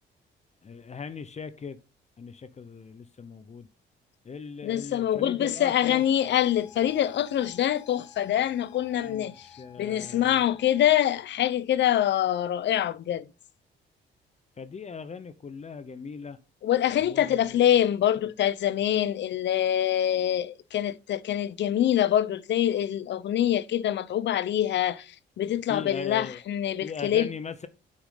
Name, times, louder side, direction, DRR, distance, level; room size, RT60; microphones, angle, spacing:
voice 1, 0.6-1.8 2.2-3.7 4.2-6.2 9.0-10.4 14.6-16.4 17.0-17.7 25.7-26.4 26.8-27.7, left 5 dB, 35° left, 0.8 m, -39 dB
voice 2, 4.6-9.5 9.8-13.3 16.6-27.3, left 11 dB, 65° left, 0.7 m, -25 dB
sound 1, 5.8-11.0, left 9 dB, 90° left, 2.2 m, -52 dB
7.9 x 6.3 x 3.8 m
cardioid pair, 90°, 20 cm